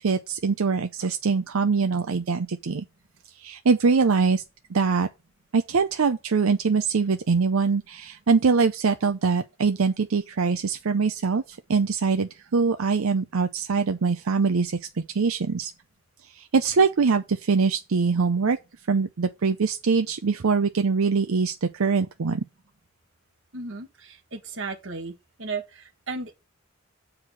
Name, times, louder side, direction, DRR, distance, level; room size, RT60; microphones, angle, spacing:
voice 1, 0.0-2.8 3.4-4.4 4.7-5.1 5.5-14.8 15.1-15.7 16.4-18.6 18.9-22.4, right 5 dB, 85° right, 0.6 m, -23 dB
voice 2, 23.5-25.1 25.4-26.3, right 4 dB, 65° right, 1.6 m, -35 dB
7.3 x 4.9 x 6.1 m
head